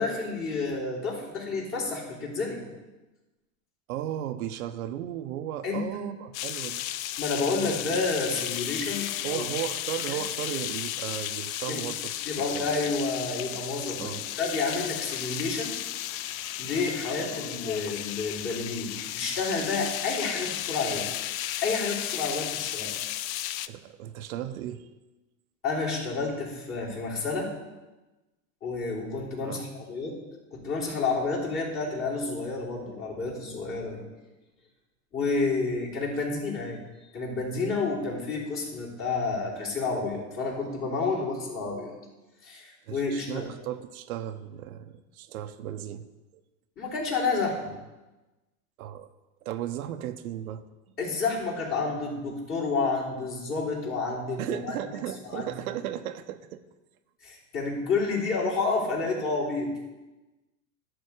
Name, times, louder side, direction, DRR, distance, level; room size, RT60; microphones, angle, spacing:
voice 1, 0.0-2.6 5.6-5.8 7.2-9.4 10.1-10.2 11.7-11.8 12.2-15.8 16.6-21.1 21.6-22.9 25.6-27.5 28.6-30.2 30.5-34.0 35.1-36.8 37.1-41.9 42.4-43.5 46.8-47.7 51.0-54.7 55.3-55.5 57.2-59.8, left 3 dB, 30° left, -4 dB, 3.4 m, -30 dB
voice 2, 3.9-6.9 7.6-7.7 9.2-12.7 14.0-14.2 23.7-24.9 29.4-29.7 36.2-36.3 42.9-46.1 48.8-49.1 49.4-50.6 54.4-56.6, right 11 dB, 80° right, 9 dB, 0.9 m, -35 dB
sound 1, 6.3-23.7, left 13 dB, 70° left, 0.6 m, -34 dB
11.5 x 4.3 x 8.0 m, 1.1 s
supercardioid pair, 130°, 42 cm